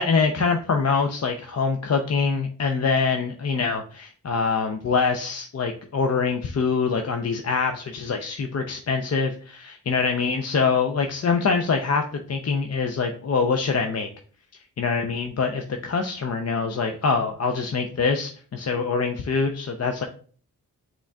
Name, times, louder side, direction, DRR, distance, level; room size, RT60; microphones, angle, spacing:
voice 1, 0.0-14.1 14.8-20.1, left 5 dB, 45° left, 5 dB, 0.6 m, -24 dB
5.9 x 3.7 x 2.3 m, 0.43 s
cardioid pair, 45°, 35 cm